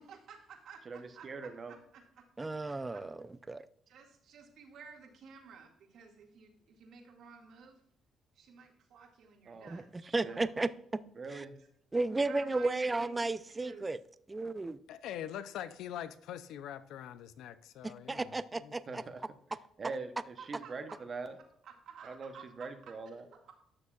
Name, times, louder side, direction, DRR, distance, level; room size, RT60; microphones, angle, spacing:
voice 1, 0.1-2.0 2.4-2.5 2.9-3.0 3.9-7.8 8.3-10.5 12.3-13.8 20.4-21.0 21.6-22.7 23.1-23.5, right 6 dB, 75° right, 2 dB, 2.1 m, -53 dB
voice 2, 0.9-1.7 9.5-10.5 11.2-11.5 18.9-19.2 19.8-21.3 22.0-22.3 22.6-23.2, right 4 dB, 40° right, 8 dB, 0.9 m, -43 dB
voice 3, 2.4-3.6 9.7-10.7 11.3-11.4 11.9-14.0 14.3-14.8 17.8-19.0, right 2 dB, 20° right, 14 dB, 0.5 m, -34 dB
voice 4, 14.9-18.4 18.6-19.0, left 10 dB, 85° left, 14 dB, 0.6 m, -43 dB
12.0 x 6.7 x 2.4 m, 0.68 s
cardioid pair, 90°, 0 cm